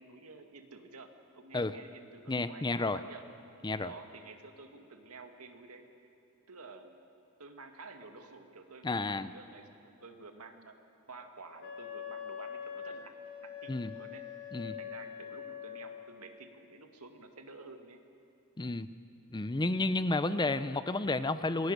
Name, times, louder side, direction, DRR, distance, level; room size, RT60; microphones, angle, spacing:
voice 1, 0.0-3.2 3.8-6.1 6.5-7.0 7.4-10.7 11.1-14.2 14.6-18.0, right 3 dB, 85° right, 5 dB, 2.1 m, -51 dB
voice 2, 2.3-3.0 3.6-3.9 8.8-9.3 13.7-13.9 14.5-14.7 18.6-18.9 19.3-21.7, left 2 dB, 20° left, 13 dB, 0.6 m, -31 dB
Wind instrument woodwind instrument, 11.6-16.1, left 8 dB, 60° left, 2.9 m, -43 dB
27.5 x 21.0 x 6.7 m, 2.9 s
head